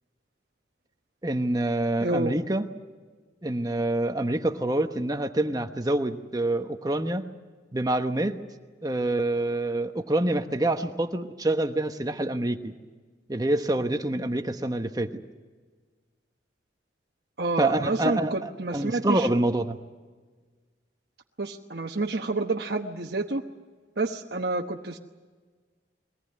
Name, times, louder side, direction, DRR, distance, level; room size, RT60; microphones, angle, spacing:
voice 1, 1.2-2.6 3.4-7.2 7.7-8.4 8.8-12.7 13.3-15.1 17.6-19.8, right 1 dB, 20° right, 7 dB, 1.1 m, -26 dB
voice 2, 2.0-2.4 17.4-19.3 21.4-23.4 24.0-25.0, right 2 dB, 60° right, 1 dB, 1.1 m, -29 dB
22.5 x 18.5 x 9.7 m, 1.4 s
head